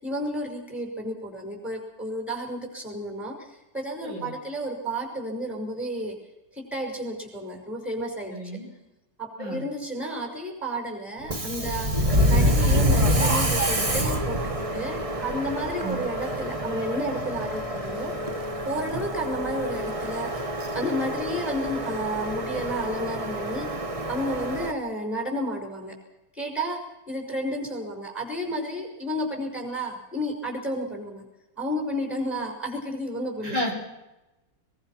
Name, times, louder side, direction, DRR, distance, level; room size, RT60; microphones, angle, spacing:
voice 1, 0.0-6.2 6.5-8.3 9.2-18.1 18.7-20.3 20.7-23.7 24.1-25.9 26.3-31.2 31.6-33.6, equal, ahead, 2 dB, 5.8 m, -32 dB
voice 2, 8.3-8.7 9.4-9.6 15.8-16.0 33.4-33.7, equal, 85° right, 0 dB, 5.7 m, -31 dB
Subway metro underground, 11.2-24.7, equal, 20° right, 1.3 m, -26 dB
22.5 x 22.0 x 6.0 m, 0.97 s
omnidirectional pair, 2.0 m